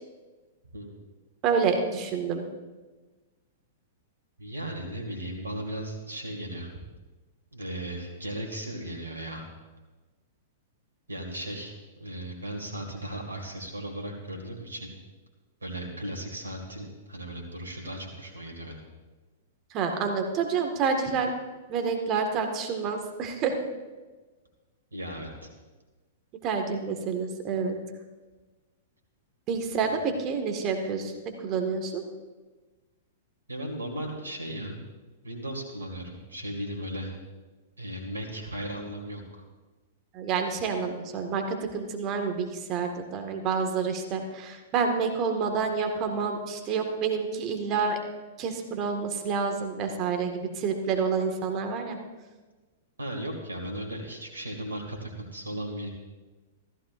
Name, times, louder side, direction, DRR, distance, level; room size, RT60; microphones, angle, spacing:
voice 1, 1.4-2.5 19.7-21.3 21.7-23.5 26.4-27.8 29.5-31.1 31.4-32.0 40.1-48.0 48.4-52.0, right 5 dB, 35° right, 5 dB, 1.7 m, -28 dB
voice 2, 4.4-6.7 7.5-9.5 11.1-11.7 12.0-14.9 15.6-18.8 24.9-25.5 29.9-30.0 33.5-34.8 35.2-37.1 37.8-39.2 53.0-55.9, right 1 dB, 90° right, 1 dB, 2.1 m, -36 dB
14.5 x 14.0 x 2.5 m, 1.2 s
hypercardioid pair, 110°, 0 cm